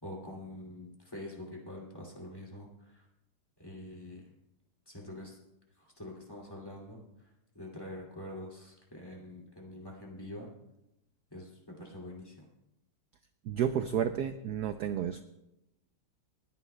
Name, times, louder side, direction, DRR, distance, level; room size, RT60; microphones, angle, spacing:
voice 1, 0.0-3.0 3.6-4.3 4.9-5.4 5.8-7.0 7.5-10.5 11.3-12.5, left 1 dB, 10° left, -2 dB, 2.4 m, -45 dB
voice 2, 13.4-15.2, right 9 dB, 80° right, 9 dB, 0.8 m, -31 dB
29.5 x 10.0 x 2.2 m, 0.89 s
omnidirectional pair, 2.3 m